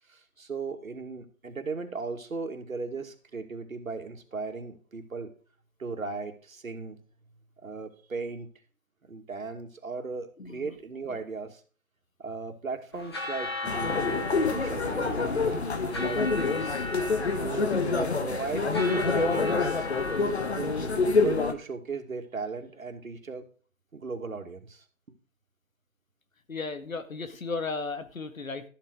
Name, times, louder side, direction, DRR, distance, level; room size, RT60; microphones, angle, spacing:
voice 1, 0.1-5.3 5.8-7.0 7.6-8.5 9.1-11.6 12.2-16.9 17.4-18.7 18.9-19.9 20.5-23.4 23.9-24.8, right 4 dB, 75° right, 5 dB, 2.7 m, -37 dB
voice 2, 10.4-10.7 11.1-11.2 15.7-16.3 26.5-28.6, left 4 dB, 75° left, 9 dB, 2.0 m, -36 dB
sound 1, 12.9-20.9, left 3 dB, 20° left, 1.4 m, -37 dB
sound 2, 13.6-21.5, left 4 dB, 50° left, 1.5 m, -27 dB
13.5 x 7.5 x 4.9 m, 0.40 s
hypercardioid pair, 175°, 41 cm